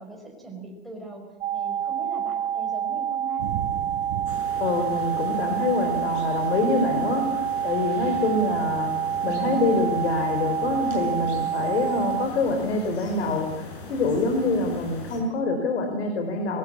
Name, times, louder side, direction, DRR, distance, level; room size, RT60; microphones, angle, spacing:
voice 1, 0.0-3.5, right 1 dB, ahead, 3 dB, 5.0 m, -41 dB
sound 1, 1.4-12.3, right 9 dB, 75° right, 1.0 m, -28 dB
Thunder / Rain, 3.4-9.1, right 10 dB, 60° right, 3.4 m, -40 dB
sound 2, 4.2-15.2, left 2 dB, 35° left, 6.5 m, -40 dB
voice 2, 4.6-8.9 9.2-16.6, left 3 dB, 80° left, 6 dB, 4.1 m, -25 dB
22.5 x 17.5 x 8.5 m, 1.0 s
supercardioid pair, 160°, 32 cm